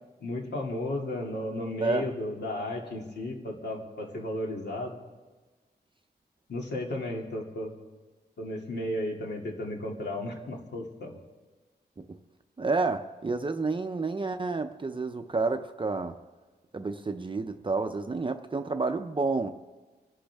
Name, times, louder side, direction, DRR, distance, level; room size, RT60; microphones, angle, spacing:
voice 1, 0.2-5.0 6.5-7.7 8.4-11.2, left 1 dB, 75° left, 0 dB, 2.5 m, -34 dB
voice 2, 12.6-16.1 16.7-19.5, right 3 dB, 30° right, 6 dB, 0.6 m, -30 dB
26.0 x 11.5 x 3.5 m, 1.3 s
wide cardioid pair, 125°, 18 cm